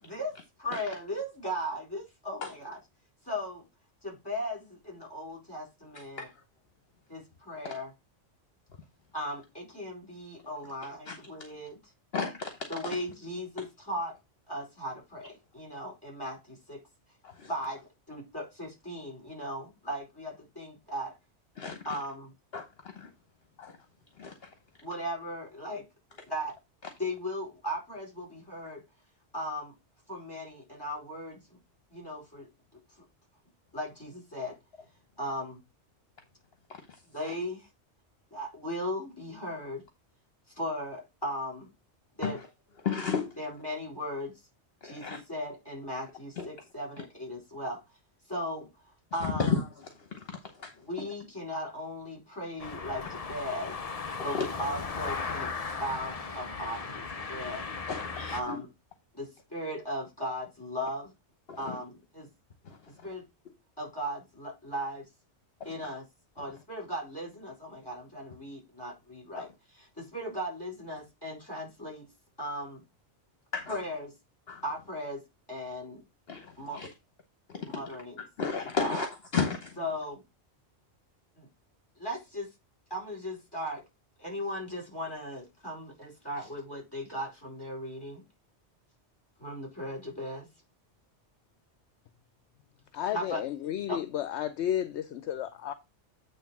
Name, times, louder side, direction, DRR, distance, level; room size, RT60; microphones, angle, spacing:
voice 1, 0.0-2.8 3.2-3.6 4.0-6.3 7.1-7.9 9.1-11.8 12.7-14.1 14.5-16.8 17.5-21.2 21.8-22.3 24.8-25.9 26.3-26.5 27.0-28.8 29.3-29.7 30.1-31.6 31.9-32.5 33.7-34.6 35.2-35.6 37.1-37.7 38.3-39.8 40.6-41.7 42.2-42.4 43.4-44.3 44.8-47.8 48.3-48.7 49.1-49.6 50.8-53.7 54.2-55.5 55.8-57.7 58.3-58.7 59.1-61.1 61.6-62.3 63.0-63.2 63.8-65.1 65.6-66.0 66.3-72.1 72.4-72.8 73.7-74.1 74.6-75.2 75.5-76.0 76.6-76.8 77.7-78.2 78.8-79.1 79.8-80.2 81.4-81.5 82.0-82.5 82.9-83.8 84.2-88.2 89.4-90.5 93.1-93.4 93.9-94.0, equal, 20° left, 4.7 m, -37 dB
voice 2, 12.1-12.5 12.8-12.9 17.4-17.5 21.6-21.8 22.5-22.6 23.0-23.1 23.6-23.7 24.2-24.3 42.2-42.3 42.8-43.3 44.8-45.2 46.4-46.5 49.4-49.6 50.6-50.7 57.9-58.6 61.5-61.6 62.7-62.8 73.5-73.8 74.5-74.6 76.3-76.5 76.7-76.9 78.4-79.1 79.3-79.7, left 5 dB, 55° left, 1.2 m, -31 dB
sound 1, 52.6-58.4, left 5 dB, 35° left, 0.8 m, -37 dB
voice 3, 92.9-95.7, left 11 dB, 75° left, 0.9 m, -32 dB
9.0 x 3.2 x 5.8 m
omnidirectional pair, 1.2 m